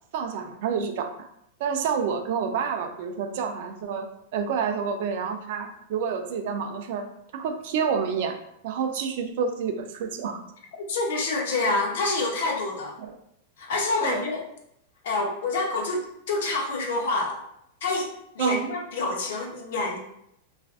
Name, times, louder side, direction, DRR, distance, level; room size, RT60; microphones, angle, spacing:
voice 1, 0.1-1.3 1.6-7.1 7.3-8.4 8.6-10.4 13.0-13.1 14.0-14.2 18.4-18.7, right 6 dB, 55° right, 6 dB, 0.3 m, -28 dB
voice 2, 10.9-13.0 13.6-14.4 15.0-17.4 17.8-18.1 18.3-20.0, left 3 dB, 70° left, 1 dB, 0.6 m, -27 dB
2.4 x 2.3 x 2.3 m, 0.76 s
supercardioid pair, 160°, 0 cm